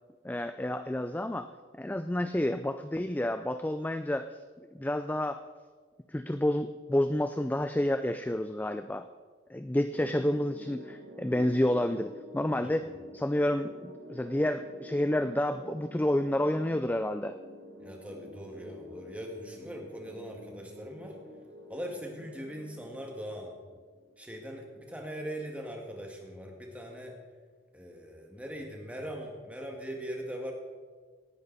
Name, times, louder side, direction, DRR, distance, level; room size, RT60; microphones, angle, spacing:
voice 1, 0.2-4.4 4.7-5.4 6.1-9.1 9.5-12.8 13.1-17.4, left 1 dB, 10° left, 10 dB, 0.3 m, -29 dB
sound 1, 9.9-24.3, left 1 dB, 80° right, 1.6 m, -48 dB
voice 2, 17.8-21.1 21.7-23.6 24.2-27.1 27.7-30.5, equal, 5° right, 1 dB, 1.9 m, -41 dB
18.0 x 11.0 x 4.1 m, 1.5 s
head